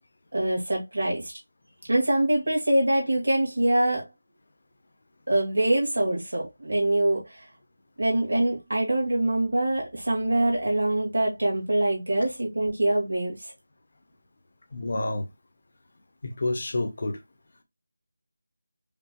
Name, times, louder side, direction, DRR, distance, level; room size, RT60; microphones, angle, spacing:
voice 1, 0.3-1.3 1.9-4.1 5.3-7.5 8.0-13.5, right 1 dB, 80° right, 2.1 m, -24 dB
voice 2, 14.7-15.2 16.2-17.2, left 2 dB, 35° left, 0.7 m, -28 dB
5.1 x 2.4 x 3.0 m
figure-of-eight pair, 180°, 0 cm